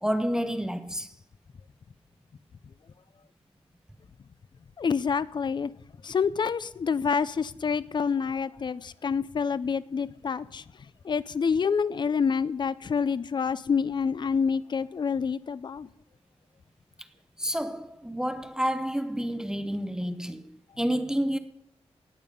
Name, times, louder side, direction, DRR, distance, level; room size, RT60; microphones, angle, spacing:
voice 1, 0.0-1.1 17.4-21.4, equal, 5° right, 0.6 m, -29 dB
voice 2, 4.8-5.7 6.0-10.6 11.0-15.9, left 6 dB, 45° left, 0.4 m, -27 dB
17.5 x 9.0 x 5.3 m
wide cardioid pair, 165°, 11 cm